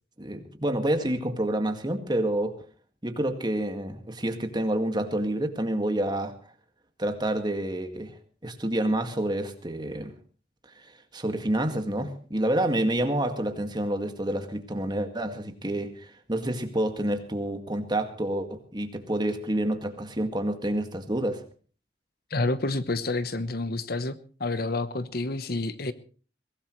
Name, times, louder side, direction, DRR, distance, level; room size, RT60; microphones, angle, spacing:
voice 1, 0.2-2.6 3.0-6.3 7.0-8.1 8.4-10.1 10.8-21.4, right 1 dB, 25° right, 6 dB, 2.0 m, -28 dB
voice 2, 22.3-24.1 24.4-25.9, left 2 dB, 60° left, 13 dB, 1.0 m, -29 dB
22.5 x 17.5 x 3.2 m, 0.39 s
head